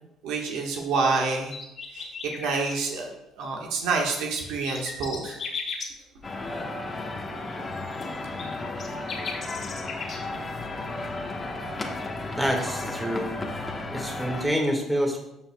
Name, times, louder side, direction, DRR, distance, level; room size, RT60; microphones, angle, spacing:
voice 1, 0.2-1.6 1.9-3.1 3.4-5.4, right 4 dB, 85° right, 0 dB, 1.5 m, -27 dB
sound 1, 1.3-2.8 4.1-5.9 7.5-10.2 12.8-12.9, left 5 dB, 55° left, 2.0 m, -36 dB
sound 2, 6.2-14.4, left 2 dB, 30° left, 1.2 m, -34 dB
voice 2, 12.4-13.3 13.9-15.2, equal, 5° right, 1 dB, 1.9 m, -27 dB
13.0 x 5.5 x 2.3 m, 0.87 s
supercardioid pair, 80°, 0 cm